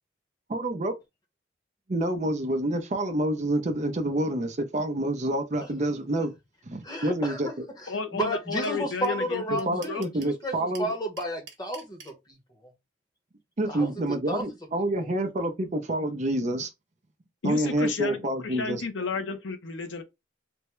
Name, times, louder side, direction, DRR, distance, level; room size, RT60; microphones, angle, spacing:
voice 1, 0.5-0.9 1.9-6.3 6.7-7.5 9.7-10.9 13.6-16.7 17.4-18.8, right 1 dB, 40° right, 0.6 m, -28 dB
voice 2, 6.8-12.7 13.7-15.1, equal, 20° left, 0.9 m, -33 dB
voice 3, 7.9-10.0 17.4-20.0, left 4 dB, 85° left, 0.7 m, -32 dB
sound 1, 8.6-8.7 9.0-9.1 9.3-10.3 10.7-12.1, right 6 dB, 70° right, 0.9 m, -45 dB
3.4 x 2.2 x 3.0 m
head